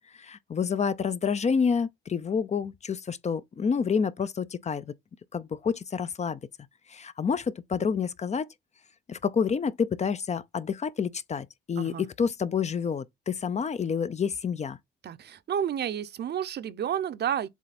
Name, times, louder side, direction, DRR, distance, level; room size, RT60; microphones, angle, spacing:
voice 1, 0.2-4.9 5.3-6.4 6.9-8.5 9.1-14.8, left 6 dB, 35° left, 0.6 m, -28 dB
voice 2, 15.0-17.5, right 9 dB, 55° right, 0.7 m, -31 dB
7.3 x 3.3 x 4.2 m
cardioid pair, 90°, 20 cm